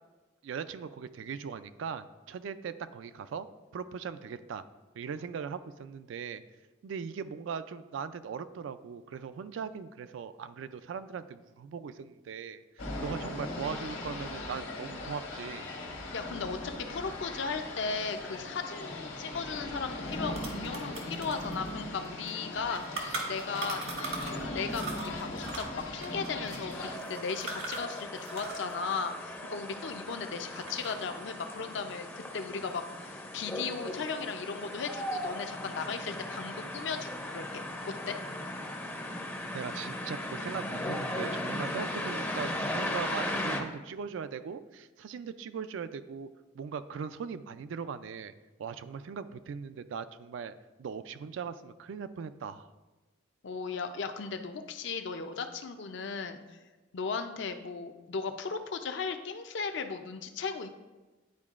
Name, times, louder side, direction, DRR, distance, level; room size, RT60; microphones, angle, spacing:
voice 1, 0.4-3.5 3.7-4.6 5.0-6.4 6.8-15.7 39.5-46.3 46.5-48.3 48.6-52.7, right 6 dB, 65° right, 12 dB, 0.3 m, -39 dB
sound 1, 12.8-27.0, left 2 dB, 75° left, 1.5 m, -39 dB
voice 2, 16.1-16.6 16.9-23.8 24.3-38.2 53.4-56.6 56.9-60.7, left 5 dB, 60° left, 7 dB, 0.5 m, -36 dB
sound 2, 19.7-19.8 20.0-24.4 24.7-28.7 29.0-30.2 30.5-31.1, right 3 dB, 85° right, 1.5 m, -40 dB
sound 3, 26.7-43.6, left 1 dB, 10° left, 0.5 m, -37 dB
10.5 x 4.5 x 2.4 m, 1.2 s
head